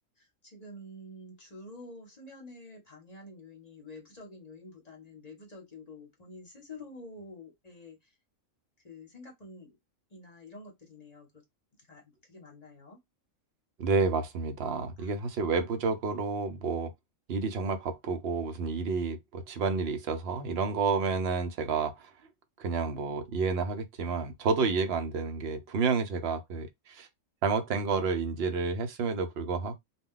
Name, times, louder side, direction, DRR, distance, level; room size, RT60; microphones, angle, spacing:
voice 1, 0.2-8.1 8.8-9.8 10.1-11.4 11.9-13.0 15.0-15.1, left 2 dB, 35° left, 0.9 m, -48 dB
voice 2, 13.8-16.9 17.3-22.1 22.6-27.1 27.4-29.8, right 4 dB, 60° right, 0.8 m, -30 dB
2.2 x 2.2 x 3.6 m
omnidirectional pair, 1.3 m